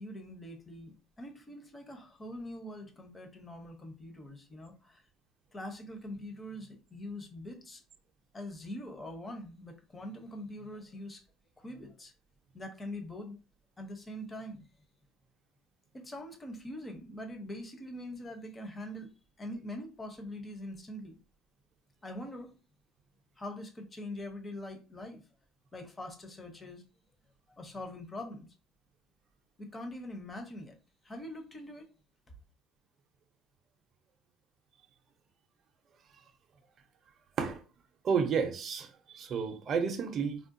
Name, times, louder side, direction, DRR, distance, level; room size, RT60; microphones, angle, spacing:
voice 1, 0.0-5.0 5.5-7.8 8.3-11.2 11.6-12.1 12.5-13.4 13.8-14.7 15.9-19.1 19.4-21.2 22.0-22.5 23.4-25.2 25.7-26.8 27.6-28.5 29.6-30.8 31.0-31.9, left 1 dB, 20° left, 0.7 m, -43 dB
voice 2, 38.0-40.4, right 6 dB, 40° right, 0.5 m, -31 dB
3.6 x 2.2 x 2.5 m
cardioid pair, 120°, 0 cm